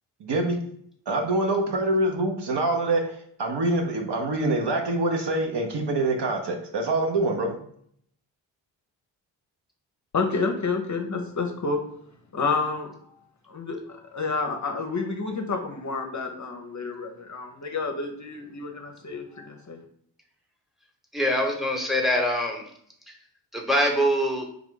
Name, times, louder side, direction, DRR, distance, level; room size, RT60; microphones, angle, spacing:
voice 1, 0.2-0.6 1.1-7.6, right 2 dB, 55° right, 3 dB, 0.8 m, -25 dB
voice 2, 10.1-11.8 12.3-12.9 13.5-19.8, left 4 dB, 35° left, 4 dB, 0.6 m, -29 dB
voice 3, 21.1-22.6 23.5-24.4, equal, ahead, 2 dB, 1.0 m, -23 dB
3.4 x 2.4 x 3.7 m, 0.65 s
supercardioid pair, 45°, 50 cm